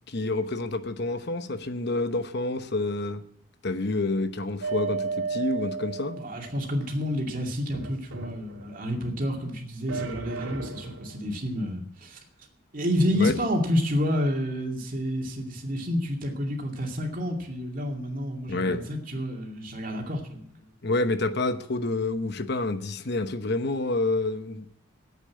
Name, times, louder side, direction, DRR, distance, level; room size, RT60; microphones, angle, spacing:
voice 1, 0.1-3.2 3.6-6.2 13.1-13.4 18.5-18.8 20.8-24.7, left 2 dB, 55° left, 1.0 m, -28 dB
sound 1, 4.6-6.6 7.7-9.0 9.9-11.3, right 4 dB, 90° right, 3.5 m, -34 dB
voice 2, 6.2-12.2 12.7-20.5, equal, 40° right, 2.4 m, -29 dB
9.4 x 8.6 x 9.5 m
head